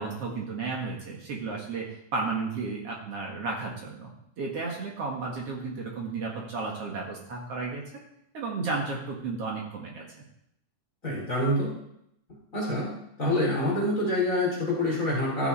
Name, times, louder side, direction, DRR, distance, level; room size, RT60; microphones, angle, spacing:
voice 1, 0.0-4.1 4.4-7.8 8.3-10.1, right 4 dB, 55° right, -1 dB, 2.5 m, -33 dB
voice 2, 11.0-11.7 12.5-12.9 13.2-15.5, left 1 dB, 25° left, -6 dB, 4.6 m, -26 dB
14.0 x 8.3 x 4.3 m, 0.77 s
omnidirectional pair, 3.6 m